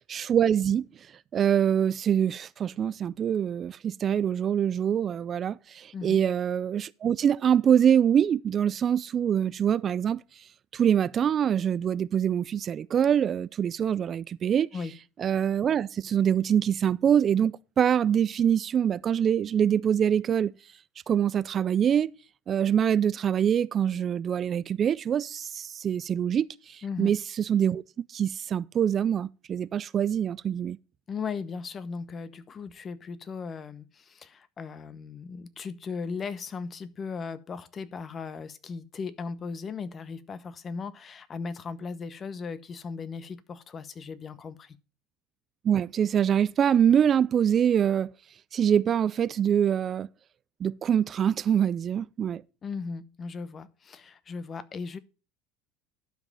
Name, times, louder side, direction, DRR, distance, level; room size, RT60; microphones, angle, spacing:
voice 1, 0.1-0.8 1.3-10.2 10.7-14.7 15.2-20.5 21.1-22.1 22.5-27.8 28.1-30.8 45.6-48.1 48.5-50.1 50.6-52.4, right 8 dB, 40° right, 0.4 m, -24 dB
voice 2, 31.1-44.8 52.6-55.0, left 5 dB, 35° left, 0.9 m, -37 dB
11.5 x 5.1 x 5.5 m
hypercardioid pair, 85°, 0 cm